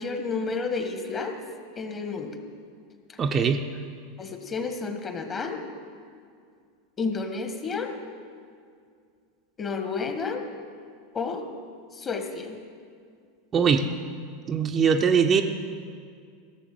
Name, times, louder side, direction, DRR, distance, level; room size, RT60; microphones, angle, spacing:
voice 1, 0.0-1.4 1.8-2.4 3.1-3.2 4.2-5.6 7.0-7.9 9.6-10.5 11.1-11.5 11.9-12.6, left 4 dB, 25° left, 5 dB, 1.6 m, -31 dB
voice 2, 3.2-3.6 13.5-13.9 14.5-15.4, right 6 dB, 25° right, 5 dB, 0.8 m, -21 dB
16.0 x 7.3 x 7.6 m, 2.2 s
figure-of-eight pair, 85°, 0 cm